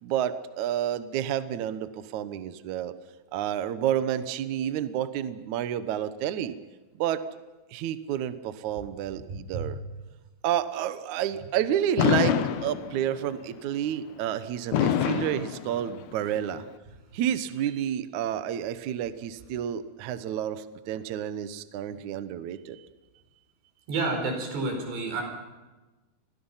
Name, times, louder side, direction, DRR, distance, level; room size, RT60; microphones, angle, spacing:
voice 1, 0.0-2.9 3.3-6.5 6.9-7.2 7.7-9.7 10.4-16.6 17.1-22.8, right 10 dB, 70° right, 12 dB, 1.8 m, -30 dB
voice 2, 9.3-9.8 23.9-25.2, right 3 dB, 90° right, 3 dB, 7.1 m, -30 dB
Fireworks, 12.0-13.3 14.7-16.3, left 10 dB, 80° left, 1.7 m, -26 dB
29.0 x 22.0 x 5.7 m, 1.2 s
omnidirectional pair, 4.8 m